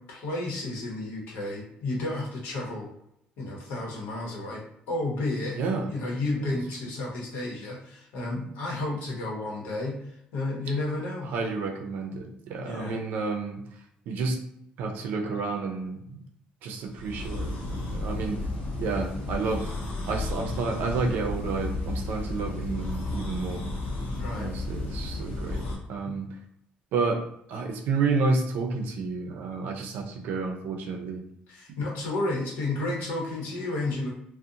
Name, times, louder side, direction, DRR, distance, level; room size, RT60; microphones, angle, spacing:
voice 1, 0.0-2.9 3.4-4.6 4.9-5.6 5.8-10.0 10.3-11.3 12.6-13.0 24.2-24.5 26.0-26.1 31.5-34.1, left 2 dB, 85° left, -2 dB, 0.8 m, -32 dB
voice 2, 5.5-5.9 6.4-6.6 11.2-13.6 14.1-14.4 14.8-16.2 16.6-18.4 18.8-19.7 20.1-23.7 24.3-26.3 26.9-27.2 27.5-31.2, right 4 dB, 70° right, 3 dB, 0.5 m, -30 dB
sound 1, 16.9-25.8, left 2 dB, 55° left, 0.8 m, -33 dB
2.7 x 2.0 x 2.5 m, 0.76 s
cardioid pair, 145°, 3 cm